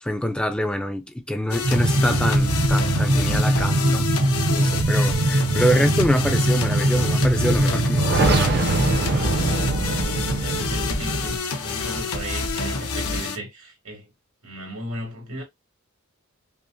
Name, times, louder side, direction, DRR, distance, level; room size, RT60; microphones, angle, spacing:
voice 1, 0.0-4.1 4.5-8.7, equal, 5° left, 0.4 m, -25 dB
sound 1, 1.5-13.4, left 4 dB, 90° left, 0.9 m, -28 dB
sound 2, 1.6-11.4, right 2 dB, 50° right, 0.6 m, -21 dB
voice 2, 9.9-11.4 11.6-14.1 14.4-15.4, right 1 dB, 90° right, 2.3 m, -36 dB
5.5 x 2.0 x 2.6 m
head